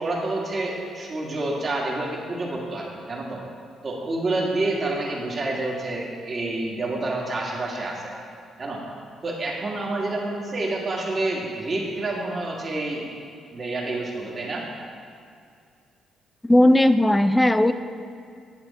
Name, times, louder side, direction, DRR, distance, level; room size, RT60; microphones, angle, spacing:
voice 1, 0.0-3.4 3.8-8.1 8.6-8.8 9.2-13.0 13.5-14.7, right 2 dB, 40° right, -2 dB, 1.9 m, -28 dB
voice 2, 16.4-17.7, left 1 dB, 10° left, 11 dB, 0.4 m, -17 dB
9.8 x 7.9 x 4.2 m, 2.3 s
cardioid pair, 90°, 0 cm